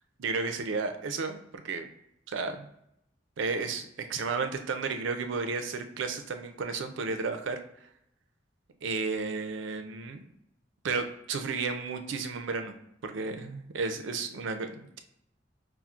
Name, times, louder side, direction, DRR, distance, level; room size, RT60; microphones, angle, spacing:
voice 1, 0.2-1.9 2.3-2.7 3.4-7.6 8.8-10.2 10.8-12.7 13.0-15.0, right 4 dB, 85° right, 7 dB, 0.4 m, -33 dB
5.6 x 2.0 x 2.4 m, 0.76 s
head